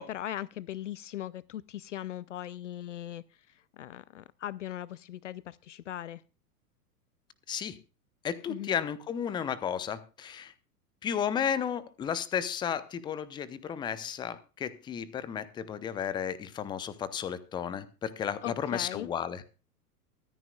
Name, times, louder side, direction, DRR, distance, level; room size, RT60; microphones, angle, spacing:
voice 1, 0.0-6.2 8.5-8.7 18.4-19.1, left 12 dB, 50° left, 23 dB, 0.5 m, -39 dB
voice 2, 8.2-10.5 11.0-19.4, left 8 dB, 10° left, 18 dB, 0.7 m, -33 dB
24.0 x 9.7 x 2.3 m, 0.34 s
figure-of-eight pair, 100°, 47 cm